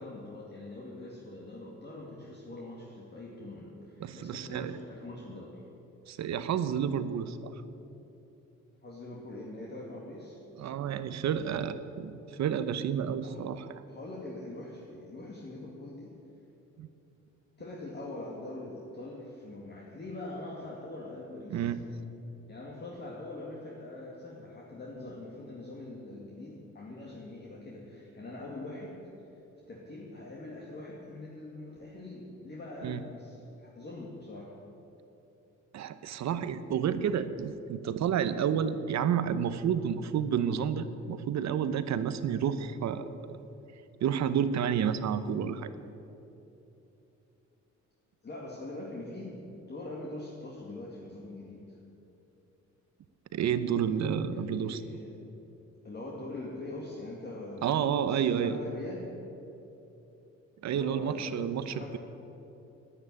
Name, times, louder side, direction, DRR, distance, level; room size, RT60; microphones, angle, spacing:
voice 1, 0.0-5.6 8.8-10.4 13.2-13.4 13.9-16.1 17.6-21.7 22.5-29.1 29.7-34.6 48.2-51.8 54.3-55.1 55.8-59.1 60.6-62.0, left 2 dB, 35° left, -3 dB, 2.2 m, -43 dB
voice 2, 4.0-4.8 6.1-7.5 10.6-13.8 16.8-16.9 21.5-21.8 32.8-33.0 35.7-43.4 44.0-45.7 53.3-54.8 57.6-58.6 60.6-62.0, right 8 dB, 65° right, 12 dB, 0.8 m, -30 dB
10.0 x 9.7 x 9.9 m, 2.9 s
cardioid pair, 90°, 30 cm